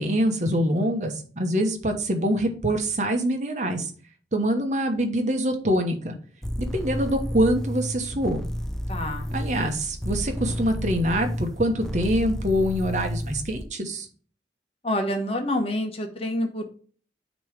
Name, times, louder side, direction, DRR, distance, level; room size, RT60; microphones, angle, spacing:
voice 1, 0.0-3.9 4.3-6.2 6.6-8.4 9.3-14.1, equal, 40° right, 5 dB, 1.1 m, -25 dB
sound 1, 6.4-13.7, equal, 5° left, 0.4 m, -31 dB
voice 2, 8.9-9.3 14.8-16.6, left 1 dB, 35° left, 5 dB, 1.1 m, -27 dB
9.1 x 3.1 x 5.1 m, 0.42 s
head